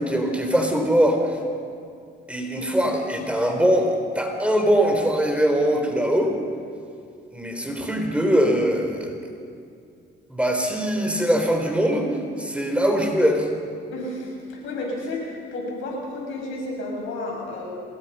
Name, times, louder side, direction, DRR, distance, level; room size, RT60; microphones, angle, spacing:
voice 1, 0.0-1.4 2.3-6.3 7.3-9.2 10.3-12.1 12.4-13.5, equal, 5° right, 3 dB, 3.8 m, -22 dB
voice 2, 13.9-14.3 14.6-17.7, left 2 dB, 85° left, -1 dB, 7.0 m, -31 dB
27.0 x 20.0 x 5.6 m, 2.3 s
cardioid pair, 90°, 20 cm